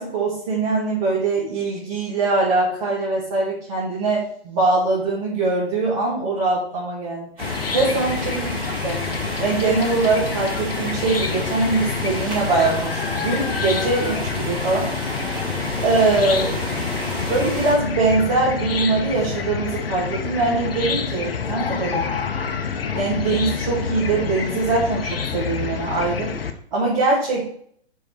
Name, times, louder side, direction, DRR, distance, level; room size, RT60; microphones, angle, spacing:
voice 1, 0.0-7.3 7.7-8.5 8.8-9.1 9.4-14.9 15.8-16.6 17.3-22.1 22.9-26.3 26.7-27.4, right 3 dB, 30° right, -6 dB, 1.9 m, -22 dB
Chicken rooster / Cricket, 7.4-26.5, left 6 dB, 60° left, 0.8 m, -27 dB
sound 1, 7.4-17.8, right 1 dB, 15° right, 2.5 m, -31 dB
6.6 x 4.6 x 4.4 m, 0.62 s
figure-of-eight pair, 125°, 32 cm